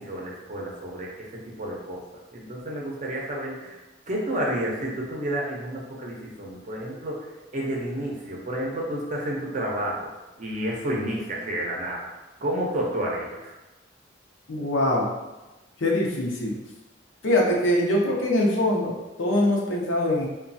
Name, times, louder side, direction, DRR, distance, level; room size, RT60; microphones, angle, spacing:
voice 1, 0.0-2.0 2.3-3.8 4.1-10.1 10.4-12.1 12.4-13.5, right 1 dB, 40° right, -3 dB, 0.6 m, -30 dB
voice 2, 14.5-15.1 15.8-16.6 17.2-20.3, left 1 dB, 80° left, -2 dB, 0.6 m, -23 dB
3.0 x 2.2 x 2.6 m, 1.1 s
head